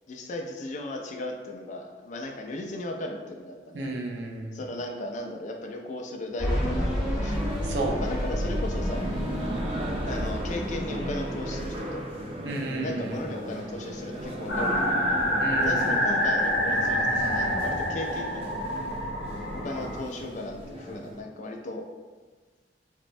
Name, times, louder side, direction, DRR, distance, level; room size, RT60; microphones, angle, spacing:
voice 1, 0.1-3.9 4.5-7.6 8.0-9.1 10.1-12.1 12.8-18.5 19.5-21.9, left 1 dB, 45° left, 2 dB, 0.3 m, -36 dB
voice 2, 3.7-4.6 7.6-8.0 12.4-13.1 15.4-16.0, right 2 dB, 85° right, 1 dB, 0.5 m, -32 dB
sound 1, 6.4-11.9, equal, 5° right, 0.9 m, -30 dB
sound 2, 7.3-21.2, right 1 dB, 35° right, 0.4 m, -37 dB
sound 3, 14.5-20.0, equal, 85° left, 0.6 m, -27 dB
4.2 x 2.0 x 2.5 m, 1.4 s
head